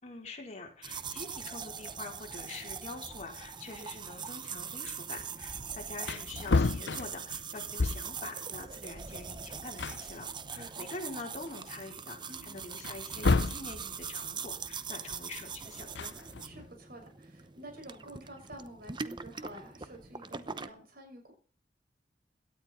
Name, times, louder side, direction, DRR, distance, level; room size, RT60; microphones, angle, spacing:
voice 1, 0.0-16.1, left 3 dB, 40° left, 0 dB, 4.2 m, -45 dB
sound 1, 0.8-20.7, right 6 dB, 25° right, 0.8 m, -42 dB
Wood, 5.6-5.7 6.0-8.3 9.4-9.5 9.8-11.0 11.5-11.6 12.8-13.7 15.7-16.7, left 3 dB, 75° left, 0.7 m, -31 dB
voice 2, 10.5-10.9 12.3-12.6 16.4-21.3, right 1 dB, 55° right, 3 dB, 6.5 m, -49 dB
17.0 x 12.0 x 4.3 m, 0.40 s
head